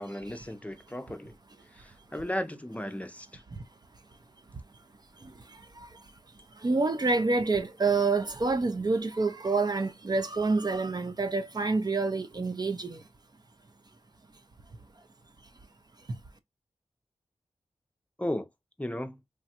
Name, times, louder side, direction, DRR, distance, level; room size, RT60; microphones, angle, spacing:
voice 1, 0.0-1.3 1.7-3.4 18.2-18.5 18.8-19.2, left 1 dB, 10° left, 0.6 m, -35 dB
voice 2, 6.6-13.0, right 3 dB, 40° right, 0.5 m, -27 dB
3.1 x 2.2 x 2.8 m
cardioid pair, 40°, 11 cm